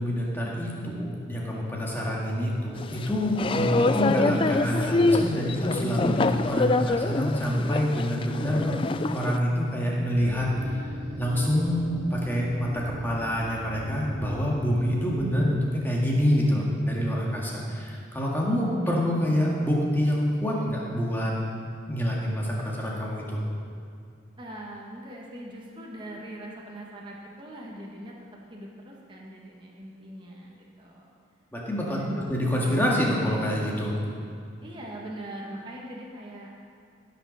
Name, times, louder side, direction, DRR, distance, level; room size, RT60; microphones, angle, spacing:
voice 1, 0.0-8.8 9.1-10.8 11.2-21.3 21.9-23.4 31.5-32.0 32.3-34.0, equal, 10° left, -4 dB, 1.9 m, -26 dB
sound 1, 2.8-9.4, left 2 dB, 25° left, 0.3 m, -25 dB
sound 2, 10.1-15.4, equal, 85° right, 2.6 m, -39 dB
voice 2, 24.3-28.1 28.5-31.1 31.9-32.2 34.6-36.5, right 1 dB, 25° right, -3 dB, 1.6 m, -41 dB
16.0 x 6.9 x 6.4 m, 2.3 s
head